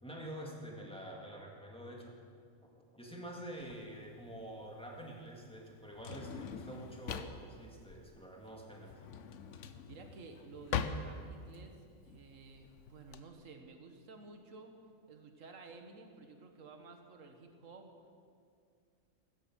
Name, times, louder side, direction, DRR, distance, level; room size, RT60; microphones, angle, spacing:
voice 1, 0.0-2.2 2.9-9.0, right 1 dB, 5° left, -2 dB, 2.3 m, -47 dB
Drawer open or close, 3.6-13.2, left 7 dB, 70° left, 1.1 m, -43 dB
voice 2, 9.6-11.8 12.0-14.7 15.1-17.9, right 3 dB, 75° right, 5 dB, 1.8 m, -53 dB
16.0 x 12.5 x 6.3 m, 2.2 s
omnidirectional pair, 1.4 m